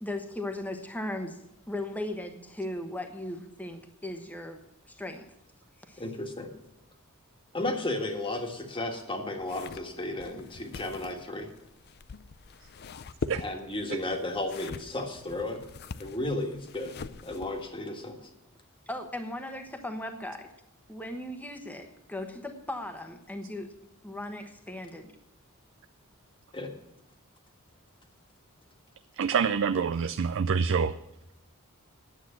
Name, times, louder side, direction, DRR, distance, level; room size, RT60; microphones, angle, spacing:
voice 1, 0.0-1.4 1.7-4.6 4.9-5.3 5.8-6.0 18.9-20.5 20.9-23.7 24.0-25.1, left 1 dB, 5° left, 6 dB, 1.1 m, -37 dB
voice 2, 6.0-6.5 7.5-11.5 13.4-15.6 16.0-18.3 26.5-26.7, left 2 dB, 25° left, 3 dB, 1.7 m, -34 dB
sound 1, 9.4-17.7, left 4 dB, 50° left, 0.5 m, -43 dB
voice 3, 29.2-31.0, right 6 dB, 60° right, 11 dB, 0.4 m, -26 dB
9.9 x 8.2 x 8.6 m, 0.85 s
head